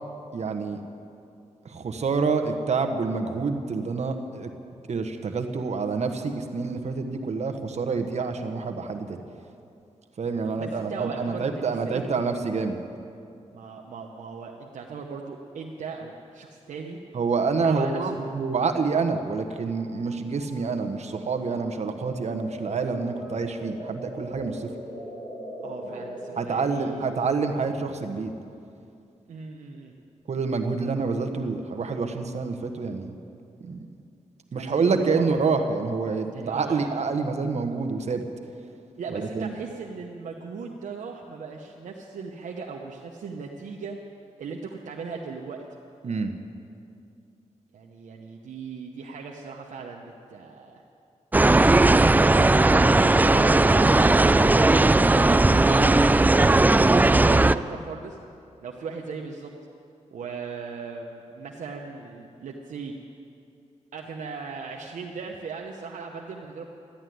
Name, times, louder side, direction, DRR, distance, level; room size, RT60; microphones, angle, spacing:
voice 1, 0.3-0.8 1.6-4.5 4.9-9.2 10.2-12.8 17.1-24.7 25.9-26.0 26.4-28.3 30.3-33.1 33.6-33.9 34.5-38.2 39.1-39.5 46.0-46.3, right 4 dB, 60° right, 6 dB, 1.3 m, -27 dB
voice 2, 10.6-12.0 13.5-17.0 17.6-18.1 25.6-27.2 29.3-29.9 34.6-35.2 36.3-36.9 39.0-44.0 44.4-45.6 47.7-50.8 52.1-55.3 55.7-58.2 58.6-59.5 60.1-62.9 63.9-66.6, right 5 dB, 90° right, 0 dB, 1.0 m, -38 dB
sound 1, 16.7-16.8 16.9-19.5 19.7-20.0 20.4-20.9 21.3-28.2, equal, 45° left, 4.7 m, -42 dB
sound 2, 51.3-57.5, right 2 dB, 15° right, 0.4 m, -17 dB
13.0 x 11.5 x 9.4 m, 2.6 s
cardioid pair, 80°, 13 cm